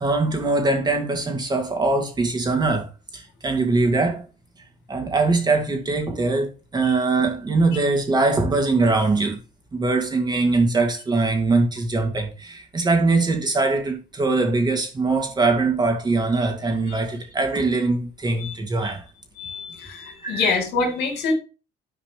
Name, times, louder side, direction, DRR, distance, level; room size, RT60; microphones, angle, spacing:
voice 1, 0.0-4.2 4.9-9.4 9.7-19.0 20.2-20.5, right 3 dB, 25° right, 2.7 m, -22 dB
voice 2, 19.4-21.3, left 4 dB, 80° left, 3.4 m, -26 dB
10.5 x 4.9 x 3.4 m
cardioid pair, 110°, 17 cm